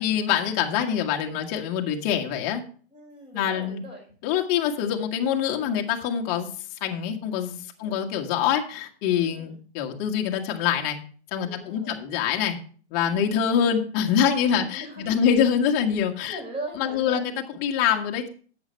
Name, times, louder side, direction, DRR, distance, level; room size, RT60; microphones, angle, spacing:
voice 1, 0.0-2.6 3.3-3.8 4.2-6.5 6.8-11.0 11.3-12.6 12.9-16.4 16.8-17.3 17.6-18.3, left 8 dB, 25° left, 2 dB, 1.6 m, -25 dB
voice 2, 2.9-4.1 7.8-8.0 9.1-9.6 11.4-12.1 14.4-15.3 16.3-17.4, right 1 dB, 15° right, 0 dB, 5.6 m, -40 dB
11.0 x 8.2 x 4.5 m, 0.43 s
hypercardioid pair, 150°, 33 cm